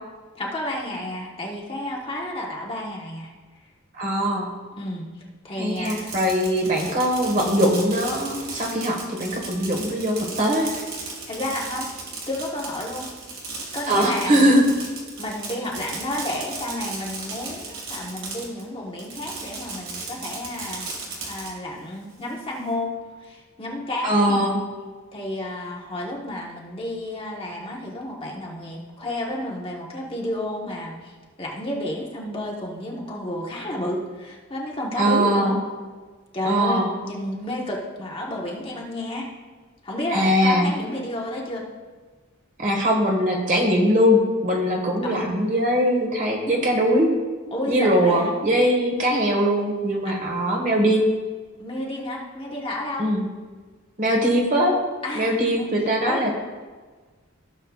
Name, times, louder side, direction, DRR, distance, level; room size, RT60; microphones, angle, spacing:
voice 1, 0.3-3.3 4.8-5.1 5.4-6.1 11.3-11.9 12.3-13.1 13.4-13.5 13.7-14.6 15.2-20.9 21.3-22.9 23.2-24.5 25.1-35.5 36.3-39.3 39.8-41.6 45.0-45.3 47.5-48.3 50.0-50.1 51.6-53.1 55.0-55.7 56.0-56.3, left 1 dB, 25° left, -3 dB, 1.3 m, -31 dB
voice 2, 4.0-4.5 5.6-10.7 13.9-14.7 24.0-24.6 34.9-35.6 36.4-36.9 40.1-40.7 42.6-47.1 47.7-51.0 53.0-53.2 54.0-54.8 55.1-56.4, equal, 40° right, 0 dB, 1.6 m, -21 dB
Fireworks, 5.7-18.6 19.0-21.5, right 3 dB, 65° right, 2.3 m, -35 dB
15.5 x 6.6 x 2.4 m, 1.4 s
head